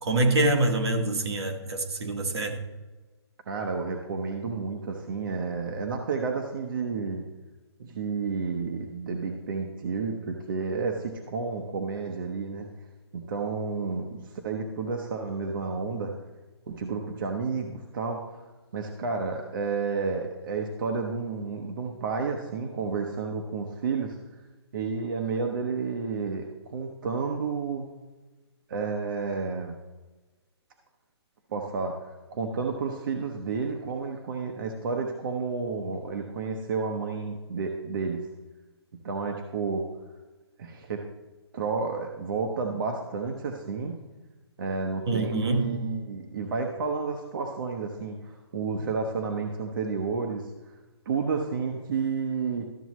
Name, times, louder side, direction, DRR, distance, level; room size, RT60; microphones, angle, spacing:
voice 1, 0.0-2.6 45.1-45.7, right 2 dB, 70° right, 1.5 m, -25 dB
voice 2, 3.5-7.2 7.8-12.7 13.1-16.1 16.7-18.2 18.7-24.2 24.7-27.9 28.7-29.8 31.5-38.3 39.0-39.9 40.6-41.0 41.5-44.0 44.6-50.7 51.1-52.6, right 4 dB, 50° right, 0.9 m, -31 dB
13.0 x 6.9 x 3.1 m
hypercardioid pair, 160°, 14 cm